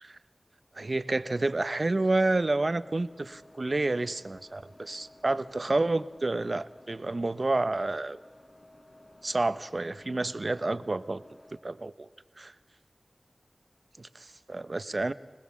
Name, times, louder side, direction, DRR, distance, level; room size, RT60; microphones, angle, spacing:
voice 1, 0.7-8.2 9.2-11.2 11.6-12.1 12.4-12.5 14.0-15.1, right 2 dB, 55° right, 14 dB, 0.8 m, -29 dB
sound 1, 2.6-11.6, left 1 dB, 55° left, 5.4 m, -55 dB
25.5 x 19.5 x 7.2 m, 1.3 s
wide cardioid pair, 50°, 0 cm